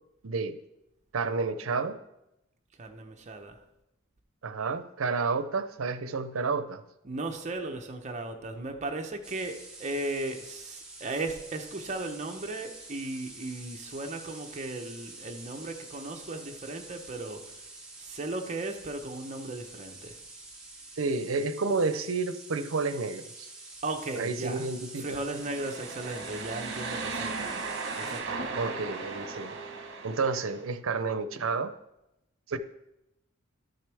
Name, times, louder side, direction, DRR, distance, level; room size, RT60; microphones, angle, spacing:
voice 1, 0.2-0.6 1.1-2.0 4.4-6.8 21.0-23.5 24.2-25.2 28.5-29.6 30.0-31.7 32.5-32.6, right 4 dB, 85° right, 0.6 m, -30 dB
voice 2, 2.8-3.6 7.0-17.5 18.0-20.2 23.8-24.7 25.0-27.5 28.0-28.6, right 2 dB, 35° right, 0.8 m, -36 dB
sound 1, 9.2-28.2, right 2 dB, 5° right, 1.6 m, -47 dB
sound 2, 25.2-30.6, right 4 dB, 60° right, 1.1 m, -37 dB
12.5 x 6.5 x 3.4 m
head